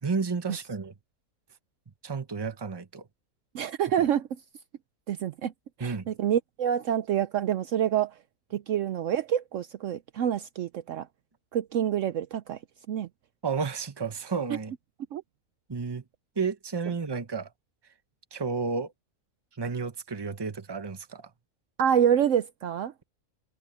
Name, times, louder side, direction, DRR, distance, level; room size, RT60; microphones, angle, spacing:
voice 1, 0.0-0.9 2.0-3.1 4.0-4.1 5.8-6.1 13.4-14.7 15.7-16.0 16.4-17.5 18.3-18.9 19.6-21.3, right 5 dB, 20° right, 0.9 m, -31 dB
voice 2, 3.5-4.3 5.1-5.5 5.8-8.1 8.5-11.1 11.5-12.6 12.9-13.1 15.1-15.2 21.8-22.9, right 9 dB, 65° right, 0.9 m, -27 dB
omnidirectional pair, 1.5 m